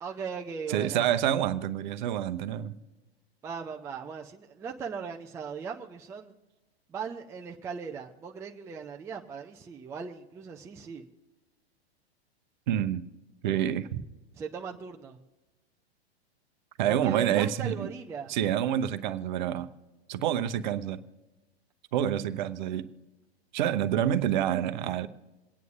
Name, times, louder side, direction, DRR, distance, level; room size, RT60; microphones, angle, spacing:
voice 1, 0.0-1.1 3.4-6.3 6.9-11.1 14.3-15.2 16.9-18.4, right 6 dB, 10° right, 2 dB, 0.5 m, -38 dB
voice 2, 0.7-2.7 12.7-13.0 13.4-14.0 16.8-17.9 18.3-19.7 20.1-21.0 21.9-22.9 23.5-25.1, right 10 dB, 45° right, 10 dB, 0.8 m, -27 dB
27.5 x 9.2 x 2.5 m, 1.1 s
figure-of-eight pair, 105°, 32 cm